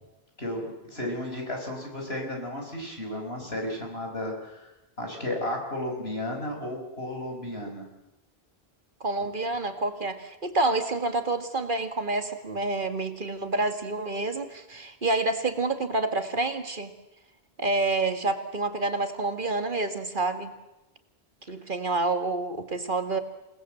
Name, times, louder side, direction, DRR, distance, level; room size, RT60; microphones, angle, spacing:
voice 1, 0.4-4.7 5.0-7.8, left 1 dB, 80° left, 2 dB, 5.7 m, -33 dB
voice 2, 9.0-16.9 17.6-20.5 21.5-23.2, right 2 dB, 55° right, 8 dB, 2.0 m, -28 dB
28.0 x 19.0 x 7.8 m, 0.99 s
omnidirectional pair, 1.0 m